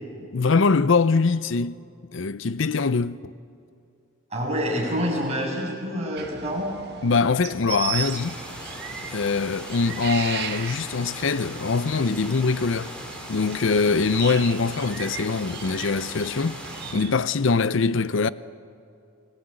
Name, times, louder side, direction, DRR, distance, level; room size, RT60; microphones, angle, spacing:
voice 1, 0.3-1.8 2.1-3.3 7.0-8.4 9.1-12.9 13.3-16.6 16.9-18.3, left 4 dB, 65° left, 0.6 m, -23 dB
voice 2, 4.3-6.7, equal, 30° right, 7.6 m, -27 dB
sound 1, 6.2-17.2, right 7 dB, 55° right, 2.0 m, -37 dB
sound 2, 8.0-16.9, equal, 5° left, 3.7 m, -39 dB
28.5 x 19.5 x 8.9 m
head